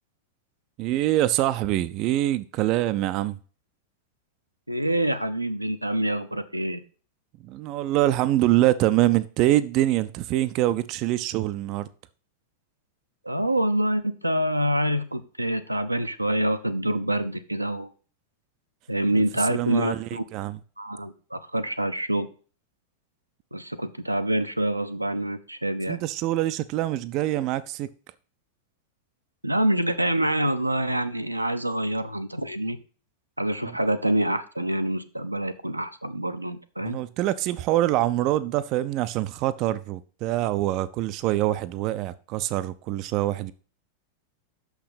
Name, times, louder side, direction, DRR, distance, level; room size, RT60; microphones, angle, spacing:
voice 1, 0.8-3.4 7.5-11.9 19.5-20.6 25.9-27.9 36.8-43.5, right 14 dB, 40° right, 0.4 m, -24 dB
voice 2, 4.7-6.8 13.2-17.9 18.9-20.3 20.8-22.3 23.5-26.0 29.4-32.8 33.4-37.0, right 1 dB, 85° right, 0.6 m, -26 dB
6.5 x 5.8 x 5.6 m
figure-of-eight pair, 90°, 0 cm